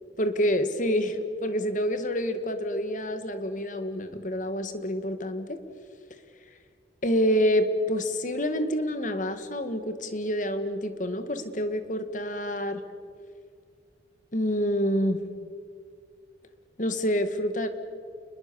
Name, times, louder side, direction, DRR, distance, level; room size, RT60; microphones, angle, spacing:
voice 1, 0.2-5.6 7.0-12.8 14.3-15.2 16.8-17.7, equal, 45° left, 9 dB, 1.9 m, -27 dB
30.0 x 21.0 x 7.0 m, 2.2 s
head